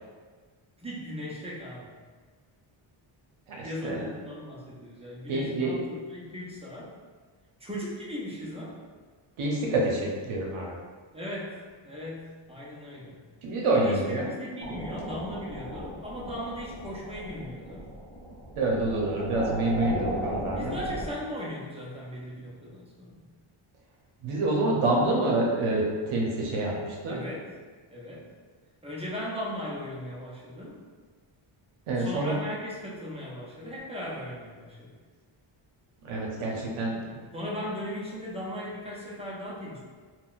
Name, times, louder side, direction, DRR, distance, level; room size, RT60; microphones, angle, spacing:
voice 1, 0.8-1.9 3.6-6.9 7.6-8.8 11.1-11.5 11.8-13.2 13.6-17.9 20.5-23.3 27.1-27.5 27.9-28.3 28.8-30.8 31.9-34.9 37.3-39.8, left 1 dB, 15° right, -6 dB, 0.4 m, -38 dB
voice 2, 3.5-4.0 5.3-5.8 9.4-10.8 13.4-14.3 18.6-20.8 24.2-27.2 31.9-32.3 36.0-37.1, right 2 dB, 75° right, -2 dB, 0.7 m, -27 dB
sound 1, 14.6-21.1, right 1 dB, 25° left, 0.9 m, -36 dB
3.6 x 2.1 x 2.3 m, 1.5 s
wide cardioid pair, 155°, 49 cm